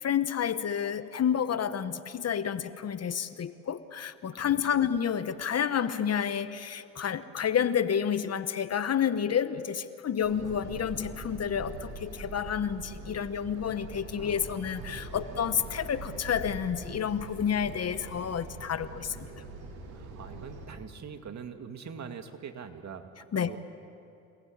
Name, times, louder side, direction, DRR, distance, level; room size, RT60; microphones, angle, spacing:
voice 1, 0.0-19.3 23.3-23.5, left 8 dB, 40° left, 13 dB, 1.1 m, -30 dB
voice 2, 4.3-4.8 14.2-15.5 19.9-23.6, right 6 dB, 50° right, 6 dB, 2.3 m, -44 dB
sound 1, 10.2-20.7, right 3 dB, 80° right, 5.4 m, -43 dB
28.0 x 19.5 x 8.8 m, 2.8 s
supercardioid pair, 80°, 37 cm